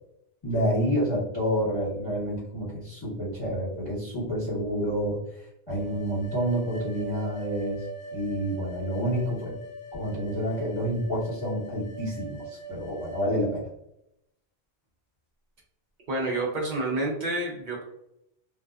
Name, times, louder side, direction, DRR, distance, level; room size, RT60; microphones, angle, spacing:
voice 1, 0.4-5.2 5.7-7.9 8.1-9.5 9.9-13.7, equal, 25° left, -9 dB, 1.3 m, -28 dB
sound 1, 5.7-13.3, right 3 dB, 50° left, 0.7 m, -41 dB
voice 2, 16.1-17.8, right 2 dB, 50° right, -2 dB, 0.8 m, -28 dB
2.5 x 2.3 x 2.3 m, 0.80 s
omnidirectional pair, 1.1 m